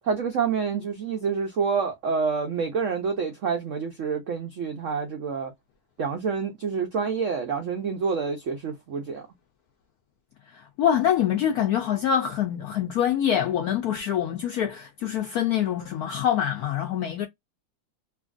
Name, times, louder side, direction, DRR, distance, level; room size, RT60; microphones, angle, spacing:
voice 1, 0.1-5.5 6.0-9.3, right 5 dB, 80° right, 0.6 m, -27 dB
voice 2, 10.5-17.3, left 9 dB, 80° left, 0.8 m, -25 dB
2.9 x 2.6 x 2.3 m
omnidirectional pair, 2.1 m